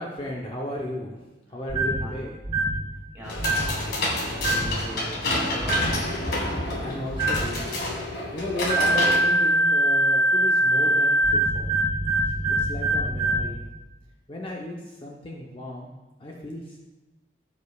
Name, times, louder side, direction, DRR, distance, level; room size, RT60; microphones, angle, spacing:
voice 1, 0.0-2.4 6.5-11.9 12.2-13.6 14.3-15.9 16.2-16.8, left 1 dB, 30° left, -2 dB, 0.7 m, -35 dB
sound 1, 1.7-2.0 2.4-2.8 3.4-3.7 4.4-4.8 5.6-6.0 7.1-7.5 8.7-13.5, right 1 dB, 35° right, 1.1 m, -22 dB
voice 2, 3.1-6.1, equal, 15° right, -5 dB, 2.2 m, -39 dB
sound 2, 3.2-9.2, left 1 dB, 60° left, 1.7 m, -29 dB
14.0 x 5.3 x 2.3 m, 1.1 s
head